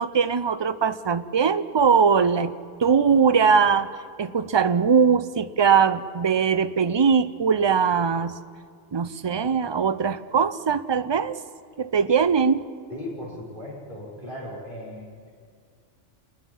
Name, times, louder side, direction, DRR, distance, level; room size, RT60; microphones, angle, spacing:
voice 1, 0.0-2.5 2.8-3.9 4.2-8.4 8.9-11.4 11.8-12.6, right 6 dB, 40° right, 12 dB, 0.4 m, -21 dB
voice 2, 12.9-15.1, left 1 dB, 45° left, -6 dB, 6.2 m, -37 dB
27.0 x 21.0 x 5.5 m, 2.1 s
omnidirectional pair, 1.2 m